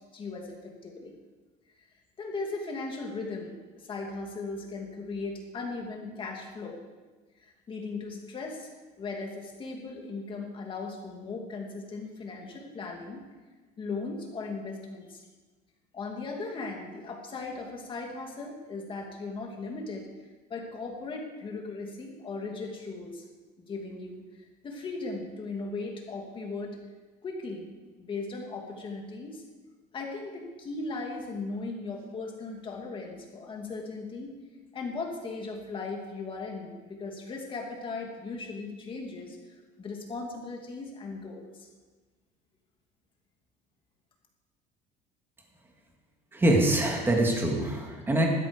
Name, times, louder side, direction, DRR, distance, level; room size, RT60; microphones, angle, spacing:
voice 1, 0.1-1.1 2.2-6.8 7.4-8.7 9.0-13.2 13.8-15.2 15.9-20.1 20.5-23.2 23.7-24.3 24.6-26.8 27.2-27.7 28.0-29.4 29.9-34.3 34.7-39.4 39.8-41.7, left 3 dB, 25° left, 1 dB, 2.4 m, -37 dB
voice 2, 46.3-48.3, right 1 dB, 10° right, 0 dB, 2.2 m, -24 dB
16.0 x 13.0 x 5.2 m, 1.3 s
cardioid pair, 175°, 20 cm